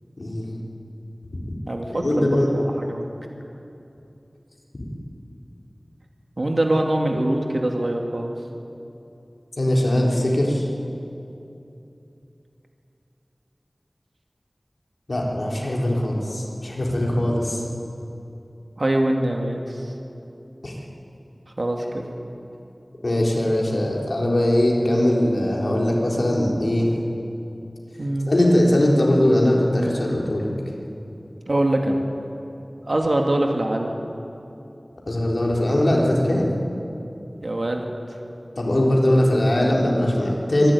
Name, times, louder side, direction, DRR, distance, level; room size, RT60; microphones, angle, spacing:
voice 1, 0.2-0.6 1.3-1.4 1.9-2.5 9.6-10.7 15.1-17.6 20.6-20.8 23.0-26.9 28.3-30.5 35.1-36.5 38.6-40.7, left 1 dB, 70° left, -2 dB, 4.0 m, -20 dB
voice 2, 1.7-3.1 6.4-8.4 18.8-19.9 21.6-22.1 28.0-28.3 31.5-32.0 32.8-33.9 37.4-37.9, right 1 dB, 60° right, 2 dB, 2.3 m, -23 dB
23.5 x 12.0 x 9.8 m, 2.8 s
wide cardioid pair, 50°, 0 cm